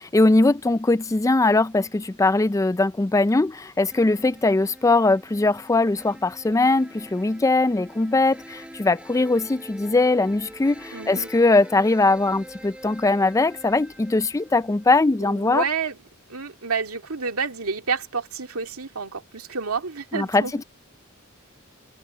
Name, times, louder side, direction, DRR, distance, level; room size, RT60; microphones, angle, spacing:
voice 1, 0.1-15.6 20.1-20.6, left 2 dB, 15° left, 0.4 m, -21 dB
sound 1, 3.9-15.2, equal, 5° right, 7.2 m, -45 dB
voice 2, 10.9-11.3 15.2-16.0 16.3-20.6, right 5 dB, 85° right, 2.2 m, -29 dB
head